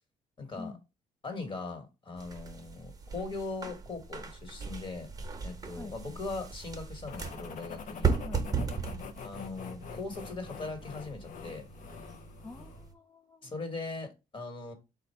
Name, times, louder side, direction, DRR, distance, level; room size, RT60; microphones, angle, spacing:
voice 1, 0.4-0.7 1.2-5.1 5.4-8.1 9.2-11.6 13.4-14.7, left 3 dB, 35° left, 1.6 m, -40 dB
sound 1, 2.2-12.9, right 5 dB, 25° right, 0.9 m, -37 dB
voice 2, 5.7-6.2 8.2-8.5 8.9-9.1 12.4-13.6, left 3 dB, 20° left, 0.4 m, -47 dB
sound 2, 7.1-12.9, left 6 dB, 65° left, 0.7 m, -45 dB
4.0 x 2.4 x 4.4 m
cardioid pair, 105°, 14 cm